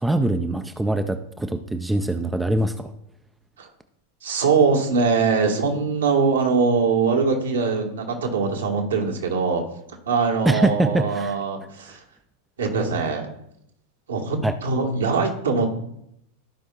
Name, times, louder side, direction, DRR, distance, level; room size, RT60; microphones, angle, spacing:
voice 1, 0.0-2.9 10.5-11.4 14.4-14.5, right 1 dB, 5° right, 8 dB, 0.5 m, -23 dB
voice 2, 4.2-9.6 10.1-12.0 12.6-13.3 14.1-15.7, right 4 dB, 65° right, 2 dB, 1.6 m, -22 dB
14.5 x 5.4 x 2.4 m, 0.77 s
figure-of-eight pair, 90°, 0 cm